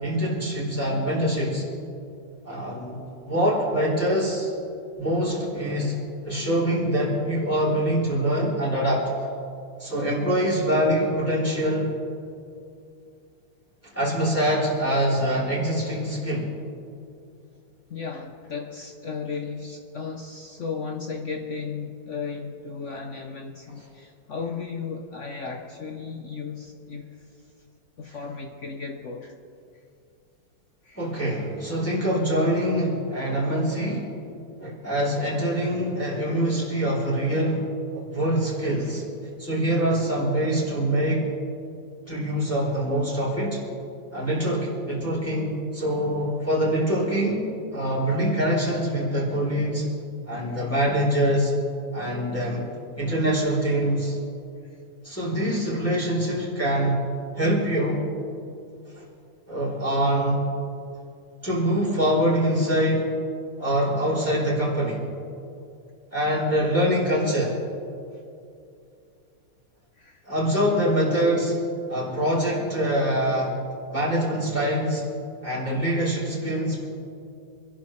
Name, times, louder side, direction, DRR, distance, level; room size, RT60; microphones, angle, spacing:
voice 1, 0.0-1.6 2.4-3.0 3.2-4.5 5.0-6.0 6.2-9.0 9.8-11.9 13.8-16.5 31.0-34.1 34.6-37.7 37.9-39.0 39.4-41.3 42.1-43.6 44.1-49.8 50.2-51.5 51.9-52.7 53.0-54.2 55.0-57.0 57.4-58.1 58.9-59.0 59.5-60.4 61.4-63.1 63.6-65.1 66.1-67.6 70.2-71.6 71.9-73.6 73.9-75.1 75.4-76.8, equal, 5° left, -8 dB, 3.1 m, -24 dB
voice 2, 17.9-27.4 28.0-29.4 30.8-31.1 50.5-50.7 54.6-54.8 56.8-56.9 69.9-70.2, left 5 dB, 65° left, 3 dB, 0.7 m, -35 dB
25.5 x 11.5 x 3.2 m, 2.6 s
omnidirectional pair, 2.2 m